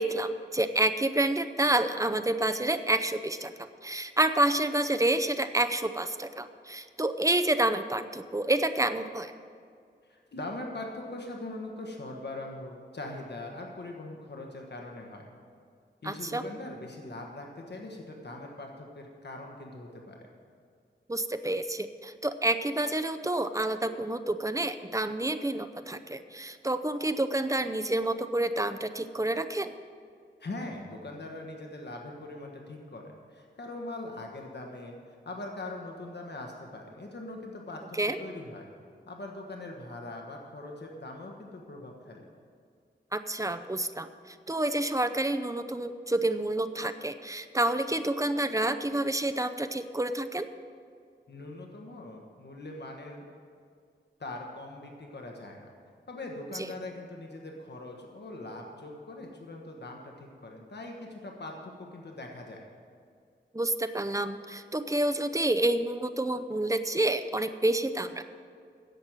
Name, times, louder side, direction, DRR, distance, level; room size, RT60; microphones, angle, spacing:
voice 1, 0.0-9.3 16.0-16.4 21.1-29.7 37.9-38.2 43.1-50.5 56.5-56.7 63.5-68.2, right 1 dB, 15° right, 10 dB, 0.6 m, -29 dB
voice 2, 10.0-15.3 16.0-20.3 30.4-38.7 39.1-42.3 51.3-53.2 54.2-55.7 56.1-62.6, left 2 dB, 65° left, 1 dB, 1.4 m, -41 dB
10.5 x 7.8 x 8.9 m, 2.2 s
wide cardioid pair, 95°, 19 cm